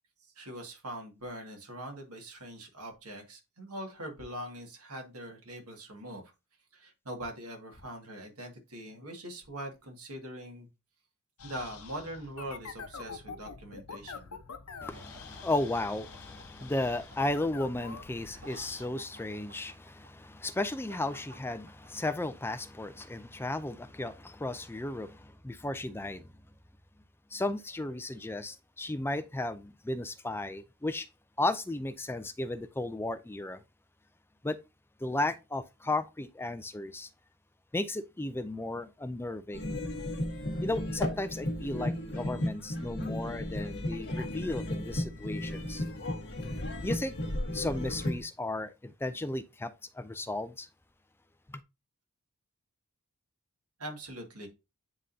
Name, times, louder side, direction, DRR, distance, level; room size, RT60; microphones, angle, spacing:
voice 1, 0.2-6.2 6.7-10.7 11.4-14.3 53.8-54.5, right 1 dB, 85° right, 2.0 m, -42 dB
sound 1, 11.4-18.9, left 5 dB, 80° left, 0.9 m, -46 dB
voice 2, 14.8-26.3 27.3-31.1 31.4-33.6 34.4-34.6 35.0-37.1 37.7-39.7 40.6-45.9 46.8-47.1 47.5-50.7, left 2 dB, 10° left, 0.4 m, -34 dB
sound 2, 14.8-22.3, right 1 dB, 70° right, 2.1 m, -55 dB
sound 3, 39.5-48.2, left 1 dB, 55° left, 1.5 m, -34 dB
9.6 x 3.8 x 2.7 m
head